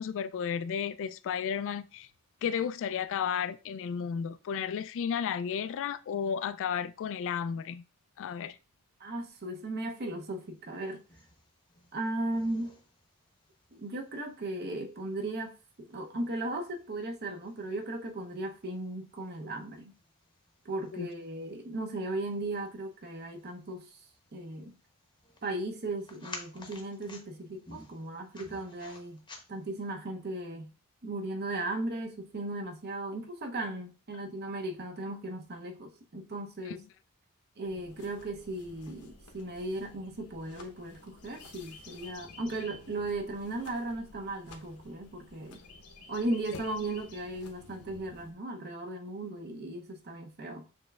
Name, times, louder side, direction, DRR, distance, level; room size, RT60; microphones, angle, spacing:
voice 1, 0.0-2.1 2.4-7.8 8.2-8.6 20.9-21.1 36.7-36.8 46.5-46.6, left 7 dB, 60° left, 0.3 m, -33 dB
voice 2, 9.0-11.0 11.9-12.8 13.7-19.9 20.6-23.9 24.3-24.7 25.4-29.2 29.5-30.7 31.0-36.8 37.6-45.6 46.1-50.7, right 2 dB, 45° right, 0.8 m, -36 dB
sound 1, 10.5-29.9, left 3 dB, 20° left, 0.8 m, -54 dB
sound 2, 37.6-48.3, left 3 dB, 80° left, 0.9 m, -52 dB
7.1 x 3.1 x 2.3 m
head